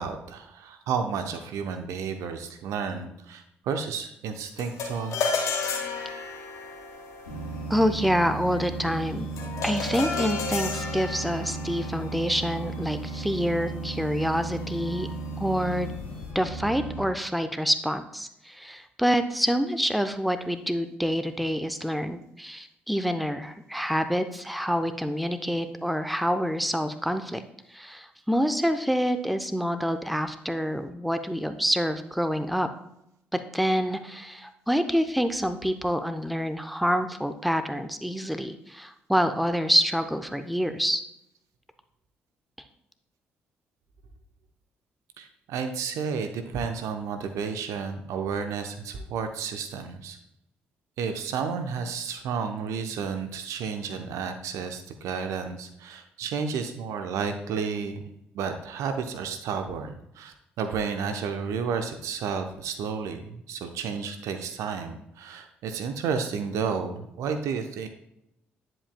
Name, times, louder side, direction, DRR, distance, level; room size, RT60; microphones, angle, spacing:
voice 1, 0.0-5.2 45.2-50.2 51.0-58.0 58.3-67.9, right 6 dB, 65° right, 7 dB, 0.7 m, -32 dB
sound 1, 4.6-14.1, left 5 dB, 60° left, 1.1 m, -34 dB
sound 2, 7.2-17.0, right 3 dB, 80° left, 2.1 m, -35 dB
voice 2, 7.7-9.3 9.6-15.1 15.4-15.9 16.3-27.4 27.7-32.7 33.3-41.0, equal, ahead, 9 dB, 0.7 m, -27 dB
9.9 x 7.6 x 2.2 m, 0.81 s
figure-of-eight pair, 45°, 6 cm